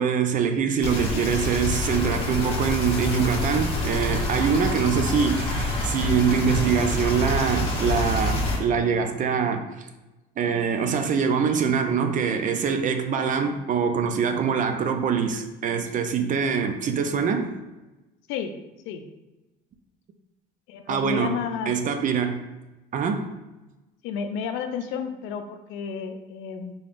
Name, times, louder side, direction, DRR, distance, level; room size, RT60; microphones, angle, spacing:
voice 1, 0.0-9.9 10.4-17.5 20.9-21.4 21.7-22.4 22.9-23.2, right 6 dB, 40° right, 7 dB, 0.4 m, -24 dB
sound 1, 0.8-8.6, left 2 dB, 25° left, 1.1 m, -27 dB
voice 2, 20.7-21.7 24.0-26.7, left 6 dB, 70° left, 7 dB, 0.5 m, -31 dB
3.8 x 3.4 x 2.5 m, 1.1 s
supercardioid pair, 95°, 21 cm